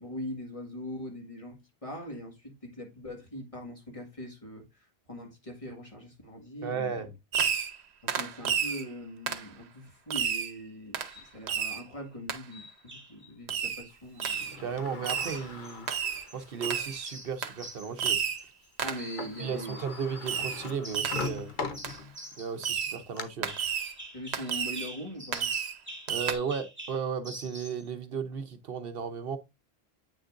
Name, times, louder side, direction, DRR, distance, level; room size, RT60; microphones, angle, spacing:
voice 1, 0.0-4.6 5.1-7.1 8.0-14.5 18.8-19.8 24.1-25.5, equal, 35° left, 1.8 m, -41 dB
voice 2, 6.6-7.1 14.5-15.9 16.3-18.5 19.4-21.5 22.4-23.5 26.1-29.4, right 6 dB, 65° right, 0.9 m, -35 dB
Fireworks, 7.3-7.8 8.1-8.8 9.3-9.5 10.1-10.5 10.9-11.1 11.5-11.8 12.3-12.4 13.5-13.8 14.2-14.6 15.0-15.4 15.9-16.3 16.6-17.0 17.4-17.6 18.0-18.4 18.8-19.1 20.3-20.7 20.9-21.3 21.8-22.0 22.6-23.0 23.4-23.9 24.3-24.9 25.3-25.8 26.1-26.3, right 7 dB, 90° right, 1.1 m, -31 dB
sound 1, 11.1-11.3 12.5-13.3 14.1-14.6 15.2-16.4 16.7-18.7 19.0-20.3 20.8-21.4 21.7-27.8, right 1 dB, 10° right, 2.0 m, -46 dB
Sliding door, 14.3-16.9 17.5-17.6 18.9-19.0 19.2-22.4 22.8-23.2, left 4 dB, 50° left, 1.0 m, -40 dB
8.6 x 6.3 x 2.5 m
omnidirectional pair, 1.1 m